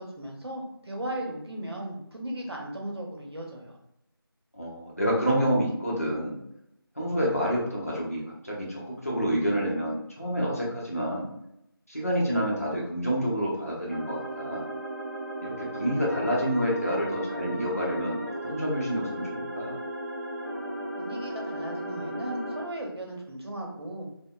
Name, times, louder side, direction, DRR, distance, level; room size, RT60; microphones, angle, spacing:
voice 1, 0.0-3.8 21.0-24.1, right 1 dB, 85° right, 0 dB, 0.8 m, -36 dB
voice 2, 4.5-6.4 7.0-11.3 11.9-14.7 15.4-18.2 18.4-19.8, equal, 35° left, -5 dB, 0.6 m, -28 dB
sound 1, 13.9-22.6, right 1 dB, 30° right, 0.5 m, -35 dB
2.8 x 2.1 x 2.2 m, 0.81 s
figure-of-eight pair, 180°, 13 cm